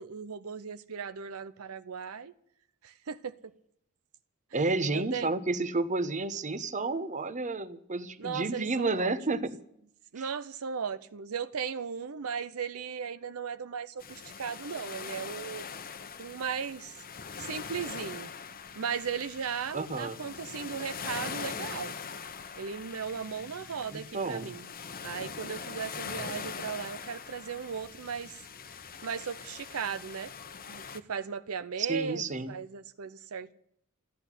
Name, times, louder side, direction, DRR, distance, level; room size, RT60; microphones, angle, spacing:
voice 1, 0.0-2.3 2.8-3.4 4.9-5.3 8.2-9.1 10.1-15.7 16.2-17.0 17.4-18.3 18.8-21.9 22.6-24.7 25.0-28.4 29.0-30.3 30.7-33.5, right 6 dB, 80° right, 0.6 m, -37 dB
voice 2, 4.5-9.6 10.2-10.3 19.7-20.2 23.9-24.5 31.8-32.5, right 3 dB, 35° right, 1.0 m, -31 dB
sound 1, 14.0-31.0, left 6 dB, 45° left, 0.9 m, -42 dB
14.0 x 10.0 x 9.9 m
head